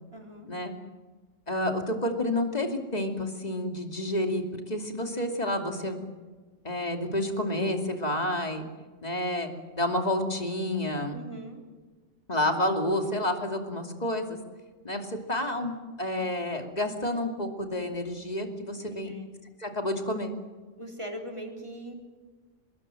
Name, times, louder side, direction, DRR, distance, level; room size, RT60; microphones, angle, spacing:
voice 1, 0.1-0.5 11.1-11.6 18.7-19.3 20.8-21.9, right 1 dB, 25° right, 1 dB, 3.9 m, -40 dB
voice 2, 1.5-6.0 6.6-8.6 9.0-9.5 9.8-11.2 12.3-14.4 14.8-15.7 16.0-19.1 19.6-20.3, left 1 dB, 35° left, 4 dB, 2.8 m, -29 dB
25.0 x 21.0 x 7.8 m, 1.3 s
omnidirectional pair, 1.2 m